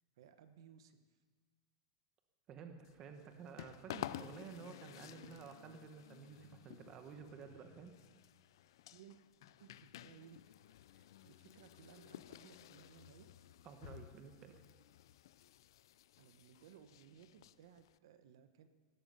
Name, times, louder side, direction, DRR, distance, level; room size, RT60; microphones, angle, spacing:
voice 1, 0.2-1.1 8.9-9.2 9.6-13.3 16.2-18.7, right 8 dB, 60° right, 10 dB, 1.1 m, -61 dB
voice 2, 2.5-7.9 13.6-14.6, right 6 dB, 25° right, 6 dB, 0.9 m, -52 dB
sound 1, 2.8-18.0, left 13 dB, 60° left, 0.4 m, -53 dB
18.0 x 12.5 x 5.5 m, 1.5 s
supercardioid pair, 180°, 3 cm